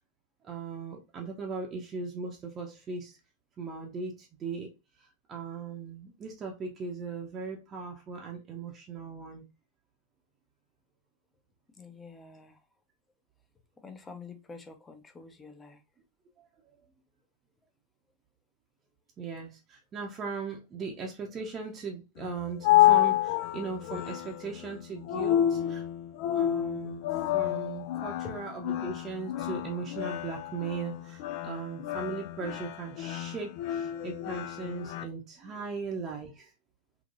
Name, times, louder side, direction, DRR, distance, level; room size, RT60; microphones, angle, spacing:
voice 1, 0.4-3.2 3.6-4.7 5.0-9.4 16.4-16.5 19.2-25.8 26.3-27.1 27.3-36.5, right 4 dB, 25° right, 0.7 m, -38 dB
voice 2, 11.8-12.6 13.8-15.8, left 4 dB, 15° left, 0.7 m, -48 dB
sound 1, 22.2-35.0, left 13 dB, 45° left, 0.3 m, -29 dB
3.7 x 2.8 x 2.5 m
figure-of-eight pair, 90°, 0 cm